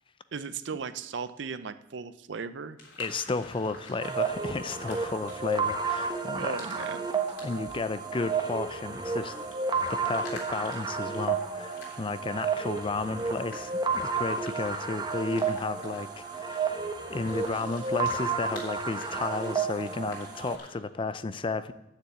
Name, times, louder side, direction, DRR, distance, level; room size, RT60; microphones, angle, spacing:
voice 1, 0.3-2.8 6.4-7.1, right 5 dB, 70° right, 13 dB, 0.6 m, -36 dB
sound 1, 2.8-20.7, left 2 dB, 75° left, 3.4 m, -50 dB
voice 2, 3.0-6.6 7.4-9.5 9.9-21.7, left 3 dB, 30° left, 13 dB, 0.5 m, -33 dB
sound 2, 4.0-20.6, right 5 dB, 25° right, 1.0 m, -32 dB
9.7 x 6.8 x 8.5 m, 0.89 s
head